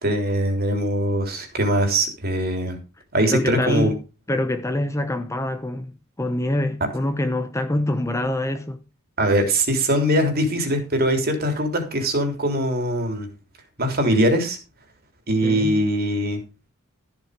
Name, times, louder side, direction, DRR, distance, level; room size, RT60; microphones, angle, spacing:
voice 1, 0.0-2.8 3.1-3.9 9.2-13.3 13.8-14.6 15.3-16.4, right 1 dB, 45° right, 3.4 m, -22 dB
voice 2, 3.3-3.9 4.3-5.9 6.2-8.8 15.4-15.8, left 1 dB, 15° left, 0.9 m, -25 dB
14.0 x 7.6 x 5.1 m
head